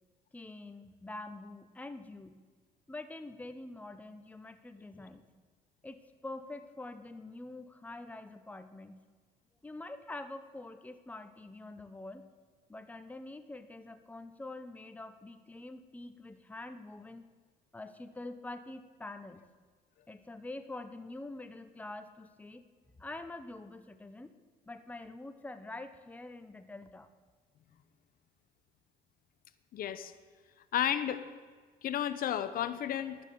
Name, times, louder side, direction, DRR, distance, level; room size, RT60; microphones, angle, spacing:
voice 1, 0.3-2.4 2.9-5.3 5.8-9.0 9.6-12.2 12.7-17.3 17.7-19.4 20.1-22.6 23.0-24.3 24.6-27.1, left 2 dB, 10° left, 9 dB, 0.9 m, -45 dB
voice 2, 29.7-30.1 30.7-31.2 31.8-33.2, left 10 dB, 60° left, 13 dB, 0.8 m, -32 dB
11.5 x 9.8 x 6.9 m, 1.5 s
cardioid pair, 110°, 17 cm